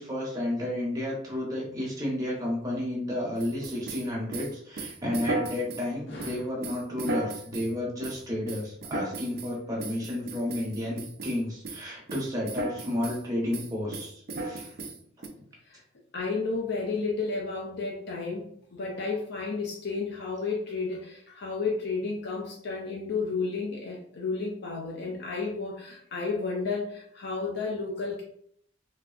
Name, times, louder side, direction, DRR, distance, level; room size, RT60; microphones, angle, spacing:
voice 1, 0.0-14.8, left 1 dB, 20° right, -4 dB, 0.9 m, -32 dB
sound 1, 3.4-5.9 6.2-7.7 8.0-8.2 8.5-9.5 9.8-11.4 11.6-11.8 12.1-13.2 13.5-15.3, right 2 dB, 50° right, 0.4 m, -35 dB
voice 2, 6.1-6.4 15.7-15.8 16.1-18.5 18.7-28.2, left 4 dB, 55° left, -2 dB, 0.5 m, -32 dB
3.4 x 2.0 x 2.4 m, 0.65 s
head